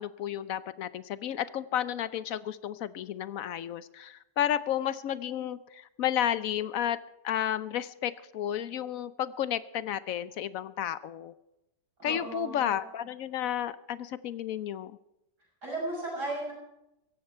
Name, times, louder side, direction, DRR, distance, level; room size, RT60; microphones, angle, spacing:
voice 1, 0.0-7.0 7.2-11.3 12.0-15.0, left 10 dB, 65° left, 15 dB, 0.9 m, -32 dB
voice 2, 12.0-12.8 15.6-16.5, right 2 dB, 70° right, -3 dB, 6.7 m, -35 dB
17.0 x 15.0 x 4.4 m, 0.88 s
omnidirectional pair, 1.8 m